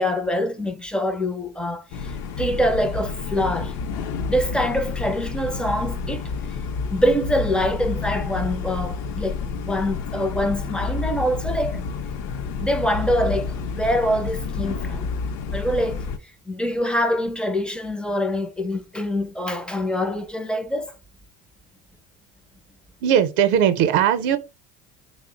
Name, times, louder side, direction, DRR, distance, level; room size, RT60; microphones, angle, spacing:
voice 1, 0.0-2.1 2.4-3.7 4.3-6.2 6.9-11.8 12.6-15.1 15.5-16.1 16.5-20.9, equal, 5° left, 0.4 m, -24 dB
sound 1, 1.9-16.2, left 4 dB, 60° left, 0.6 m, -29 dB
voice 2, 23.0-24.4, right 9 dB, 70° right, 0.6 m, -18 dB
3.3 x 2.0 x 3.7 m
supercardioid pair, 110°, 32 cm